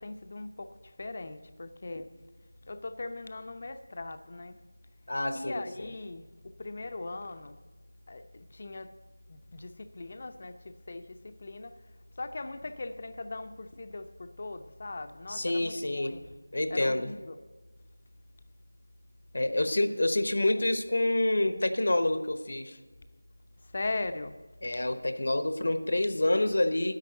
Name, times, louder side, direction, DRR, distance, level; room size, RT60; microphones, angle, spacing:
voice 1, 0.0-2.1 2.6-4.6 5.3-7.6 8.1-8.9 9.3-11.7 12.2-16.3 16.7-17.4 23.7-24.3, left 2 dB, 35° left, 10 dB, 0.7 m, -39 dB
voice 2, 5.1-5.9 15.3-16.2 16.5-17.1 19.3-22.8 24.6-27.0, left 1 dB, 60° left, 9 dB, 1.0 m, -28 dB
10.5 x 7.6 x 8.9 m, 1.3 s
figure-of-eight pair, 170°, 0 cm